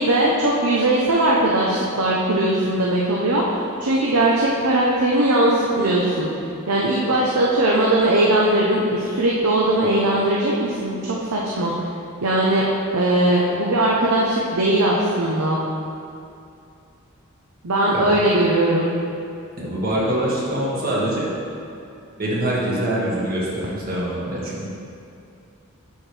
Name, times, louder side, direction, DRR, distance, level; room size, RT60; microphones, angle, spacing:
voice 1, 0.0-3.4 3.8-6.3 6.7-11.7 12.2-12.6 12.9-15.6 17.6-18.9, right 1 dB, 85° right, -4 dB, 0.8 m, -19 dB
voice 2, 17.9-18.3 19.6-21.3 22.2-24.7, right 1 dB, 45° right, -6 dB, 1.6 m, -24 dB
10.5 x 4.5 x 3.3 m, 2.6 s
head